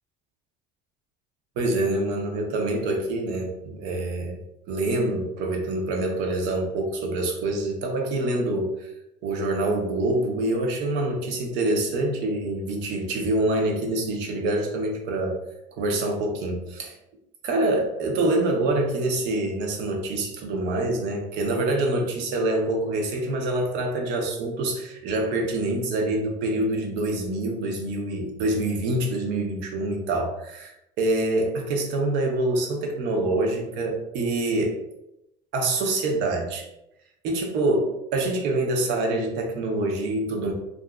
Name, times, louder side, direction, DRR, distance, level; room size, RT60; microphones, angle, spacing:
voice 1, 1.6-4.4 4.7-8.9 9.2-15.4 15.8-16.9 17.4-34.8 35.5-36.7 37.2-40.5, right 2 dB, 65° right, 1 dB, 0.7 m, -26 dB
2.8 x 2.4 x 2.3 m, 0.86 s
supercardioid pair, 115°, 19 cm